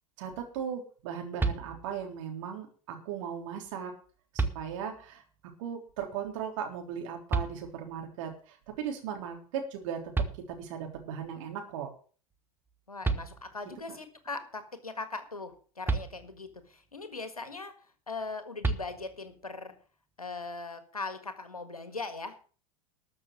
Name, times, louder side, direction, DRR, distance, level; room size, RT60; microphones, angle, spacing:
voice 1, 0.2-3.9 4.3-5.2 5.6-10.0 10.5-11.9 13.9-14.0, right 8 dB, 60° right, 4 dB, 3.3 m, -37 dB
sound 1, 1.4-2.1 3.7-3.8 4.3-5.1 7.3-8.1 9.8-9.9 10.1-11.0 12.7-12.8 13.0-13.8 15.8-16.7 18.6-19.4, right 3 dB, 10° right, 1.2 m, -33 dB
voice 2, 12.9-19.7 20.2-22.4, left 3 dB, 90° left, 10 dB, 1.7 m, -40 dB
13.0 x 6.4 x 7.3 m, 0.41 s
figure-of-eight pair, 80°, 18 cm